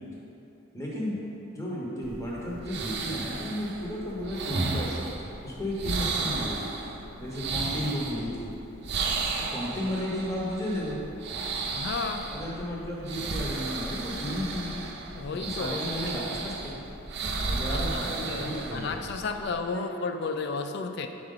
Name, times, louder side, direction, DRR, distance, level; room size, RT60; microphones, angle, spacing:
voice 1, 0.7-1.2 1.5-6.7 7.2-8.6 9.5-11.0 12.3-14.8 15.1-16.8 17.5-19.0 19.7-19.8, equal, 15° left, -5 dB, 0.9 m, -33 dB
sound 1, 2.0-19.6, right 3 dB, 55° right, 0.5 m, -34 dB
voice 2, 11.7-12.4 15.1-15.8 17.5-21.1, left 4 dB, 55° left, 7 dB, 0.3 m, -33 dB
6.3 x 4.5 x 3.8 m, 2.9 s
head